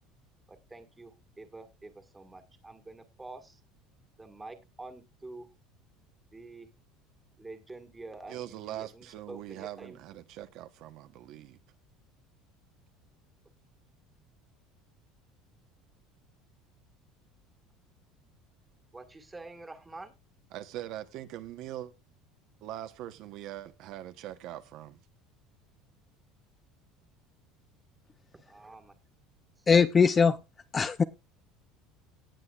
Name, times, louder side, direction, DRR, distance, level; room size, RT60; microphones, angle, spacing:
voice 1, 0.5-3.6 4.2-5.5 6.3-6.7 7.4-10.0 18.9-20.1 28.4-28.9, right 2 dB, 10° right, 1.7 m, -47 dB
voice 2, 8.3-11.6 20.5-21.9 22.6-25.0, right 13 dB, 55° right, 1.0 m, -42 dB
voice 3, 29.7-30.4 30.7-31.0, left 5 dB, 20° left, 0.5 m, -21 dB
18.0 x 7.8 x 2.4 m
cardioid pair, 150°, 0 cm